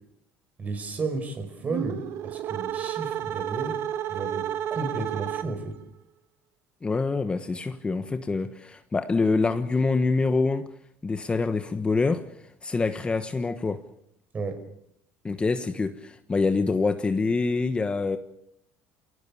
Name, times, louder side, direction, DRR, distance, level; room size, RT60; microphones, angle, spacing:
voice 1, 0.6-3.8 4.1-5.8 14.3-14.6, right 3 dB, 30° right, 5.0 m, -33 dB
sound 1, 1.6-5.8, right 11 dB, 60° right, 1.4 m, -31 dB
voice 2, 6.8-10.7 11.0-13.8 15.2-18.2, left 3 dB, 20° left, 1.3 m, -26 dB
27.0 x 18.0 x 7.2 m
cardioid pair, 110°, 5 cm